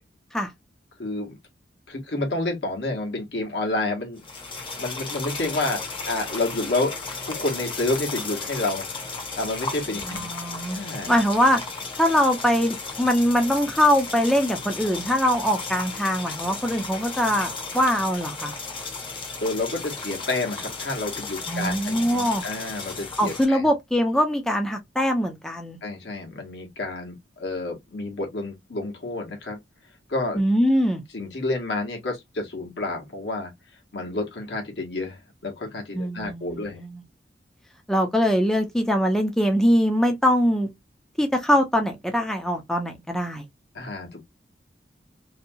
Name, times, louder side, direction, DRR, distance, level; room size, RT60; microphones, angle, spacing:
voice 1, 1.0-1.4 1.9-4.2 4.7-6.9 7.2-11.2 19.4-23.7 25.8-29.6 30.1-30.4 31.1-33.5 33.9-36.8 43.7-44.3, left 2 dB, 70° left, 1.1 m, -29 dB
sound 1, 4.2-23.4, left 4 dB, 30° left, 0.8 m, -35 dB
voice 2, 10.1-10.8 11.1-11.6 12.0-18.5 21.5-22.4 23.2-25.8 30.3-31.0 35.9-37.0 37.9-40.7 41.2-43.4, equal, 5° left, 0.5 m, -22 dB
2.8 x 2.2 x 2.6 m
head